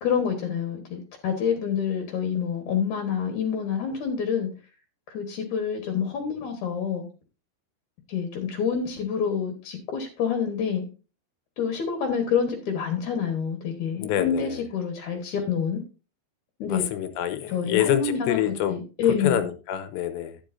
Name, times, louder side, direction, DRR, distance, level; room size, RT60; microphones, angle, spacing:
voice 1, 0.0-4.5 5.1-7.1 8.1-10.9 11.6-15.8 16.6-16.9 17.5-19.4, left 7 dB, 60° left, 2.1 m, -27 dB
voice 2, 14.0-14.6 16.7-18.8 19.2-20.4, left 11 dB, 80° left, 2.9 m, -26 dB
12.5 x 9.6 x 2.7 m
omnidirectional pair, 5.3 m